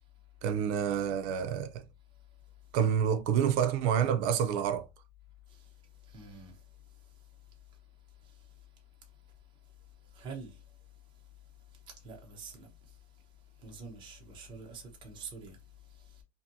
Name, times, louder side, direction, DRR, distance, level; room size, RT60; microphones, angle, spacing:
voice 1, 0.4-1.8 2.7-4.9, right 8 dB, 70° right, 0.5 m, -28 dB
voice 2, 6.1-6.5 10.2-10.5 12.0-12.7 13.6-15.6, right 4 dB, 15° right, 0.4 m, -45 dB
2.6 x 2.6 x 2.5 m
cardioid pair, 175°, 36 cm